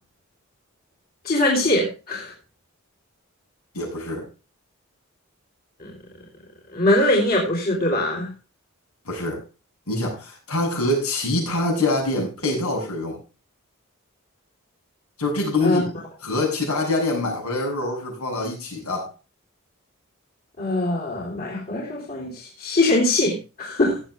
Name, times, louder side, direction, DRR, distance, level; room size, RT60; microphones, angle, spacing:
voice 1, 1.2-2.3 5.8-5.9 6.7-8.3 15.6-15.8 20.6-24.0, left 1 dB, 40° left, -2 dB, 3.8 m, -22 dB
voice 2, 3.7-4.2 9.0-9.4 9.9-13.2 15.2-15.9 16.2-19.1, left 2 dB, 80° left, -1 dB, 7.7 m, -25 dB
18.0 x 8.2 x 3.4 m, 0.31 s
head